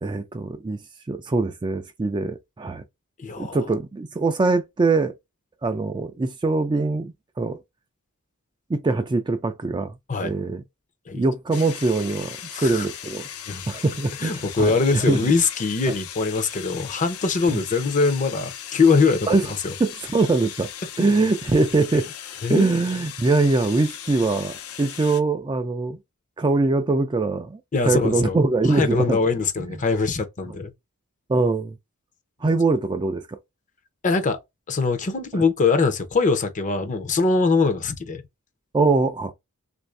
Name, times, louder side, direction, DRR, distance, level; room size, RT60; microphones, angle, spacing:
voice 1, 0.0-0.8 1.1-2.8 3.4-5.1 5.6-7.6 8.7-9.9 10.2-10.6 11.1-13.3 13.7-15.3 17.5-17.6 19.3-19.4 19.8-20.7 21.0-22.1 22.5-26.0 26.4-29.2 31.3-31.8 32.4-33.4 35.3-35.4 38.7-39.3, right 3 dB, 20° right, 0.3 m, -22 dB
voice 2, 3.2-3.6 10.1-10.3 11.1-11.2 12.5-12.9 13.5-13.6 14.2-19.4 19.6-19.7 22.4-22.8 27.7-28.4 28.7-30.7 34.0-34.4 34.7-38.2, left 4 dB, 35° left, 0.6 m, -22 dB
sound 1, 11.5-25.2, left 10 dB, 75° left, 0.6 m, -38 dB
3.2 x 2.6 x 3.2 m
head